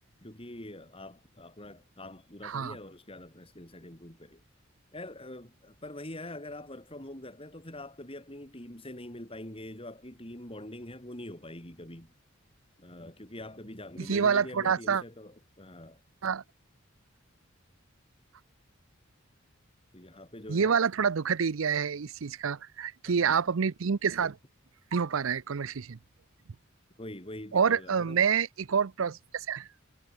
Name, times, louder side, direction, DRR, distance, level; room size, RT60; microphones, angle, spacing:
voice 1, 0.2-4.4 4.9-12.1 12.8-16.0 19.9-20.8 23.0-23.4 27.0-28.2 29.1-29.2, left 1 dB, 25° left, 4.5 m, -44 dB
voice 2, 2.4-2.8 14.0-15.0 16.2-16.4 20.5-24.4 24.9-26.0 27.5-29.7, right 6 dB, 75° right, 0.6 m, -27 dB
head